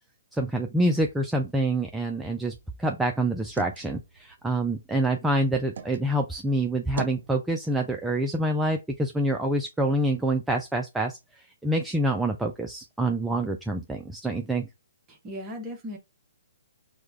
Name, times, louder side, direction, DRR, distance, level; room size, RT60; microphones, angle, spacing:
voice 1, 0.3-2.5 2.8-14.7, right 1 dB, 5° right, 0.3 m, -26 dB
sound 1, 2.2-6.0 6.4-7.3, right 7 dB, 65° right, 0.5 m, -41 dB
voice 2, 15.1-16.0, left 1 dB, 20° right, 0.7 m, -37 dB
4.8 x 2.2 x 2.3 m
hypercardioid pair, 150°, 0 cm